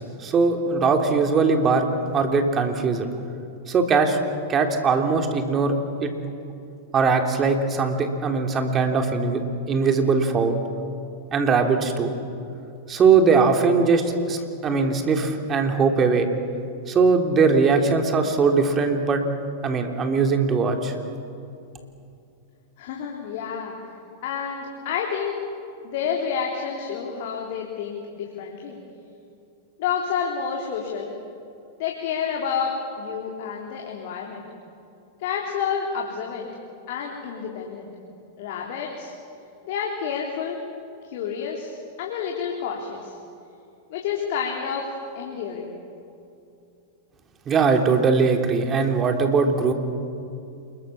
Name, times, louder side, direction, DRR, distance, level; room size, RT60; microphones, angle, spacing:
voice 1, 0.0-1.9 2.1-3.1 3.7-4.2 4.5-5.7 6.0-6.1 6.9-9.4 9.7-10.6 11.3-12.2 12.9-14.0 14.3-16.3 16.9-19.2 19.6-20.9 47.5-49.7, right 4 dB, 30° right, 4 dB, 3.5 m, -20 dB
voice 2, 22.8-23.8 24.2-25.4 25.8-28.8 29.8-31.1 31.8-34.5 35.2-36.5 36.9-37.9 38.4-39.1 39.7-40.6 41.1-43.2 43.9-45.7, left 6 dB, 60° left, -1 dB, 3.6 m, -29 dB
28.0 x 22.0 x 7.3 m, 2.6 s
hypercardioid pair, 105°, 0 cm